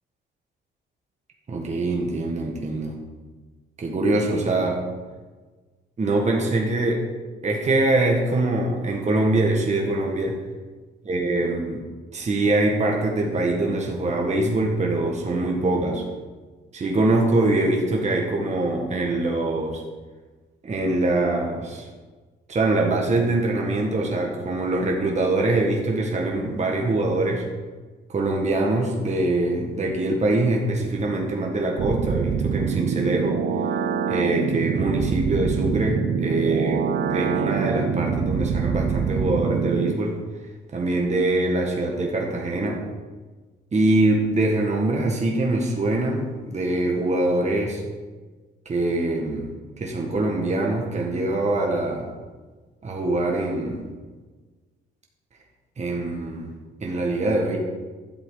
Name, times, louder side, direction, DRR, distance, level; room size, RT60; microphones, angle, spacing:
voice 1, 1.5-3.0 3.8-4.9 6.0-7.0 7.4-10.4 11.1-11.8 12.1-16.1 16.7-19.8 20.6-21.9 22.5-27.5 28.1-33.4 34.1-40.2 40.7-42.8 43.7-47.8 48.7-49.5 49.8-52.1 52.8-53.8 55.8-56.5 56.8-57.6, right 2 dB, 35° right, 0 dB, 1.7 m, -23 dB
sound 1, 31.8-39.9, right 6 dB, 55° right, 0.7 m, -25 dB
12.0 x 7.8 x 4.0 m, 1.4 s
cardioid pair, 90°, 20 cm